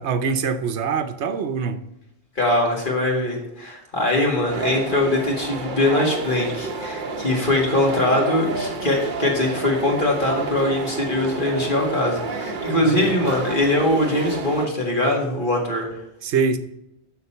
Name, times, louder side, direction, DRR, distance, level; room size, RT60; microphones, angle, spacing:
voice 1, 0.0-1.8 12.8-13.2 16.2-16.6, right 5 dB, 85° right, 10 dB, 1.0 m, -24 dB
voice 2, 2.4-15.9, left 1 dB, 50° left, -1 dB, 2.2 m, -22 dB
sound 1, 4.5-14.7, right 4 dB, 50° right, 0.9 m, -30 dB
6.7 x 6.6 x 4.4 m, 0.88 s
omnidirectional pair, 1.1 m